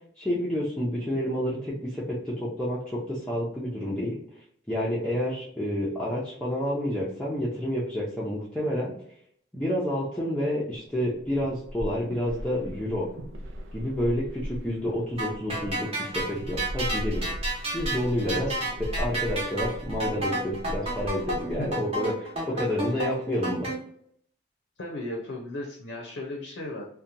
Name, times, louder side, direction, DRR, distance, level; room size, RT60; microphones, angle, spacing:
voice 1, 0.2-4.2 4.7-8.9 9.5-13.1 13.7-17.3 17.7-18.5 19.0-23.7, equal, 5° left, -8 dB, 0.5 m, -29 dB
sound 1, 11.2-21.8, equal, 80° right, 0.4 m, -37 dB
sound 2, 15.2-23.7, right 1 dB, 30° right, 0.8 m, -31 dB
voice 2, 18.2-18.7 21.6-21.9 24.8-26.9, left 1 dB, 75° left, 0 dB, 0.6 m, -35 dB
2.8 x 2.1 x 2.5 m, 0.67 s
head